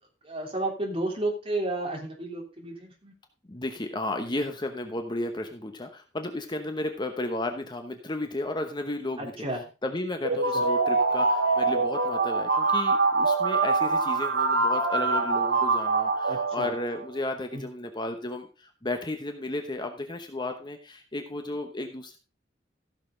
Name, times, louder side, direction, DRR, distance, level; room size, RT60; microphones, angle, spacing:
voice 1, 0.2-3.1 9.2-9.6 10.5-10.7 16.3-16.7 17.5-17.6, right 2 dB, 30° right, 0 dB, 3.2 m, -32 dB
voice 2, 3.5-9.3 9.8-22.2, left 2 dB, 25° left, 6 dB, 1.0 m, -33 dB
sound 1, 10.2-17.0, right 3 dB, 75° right, 2.0 m, -24 dB
15.0 x 6.7 x 3.8 m, 0.32 s
head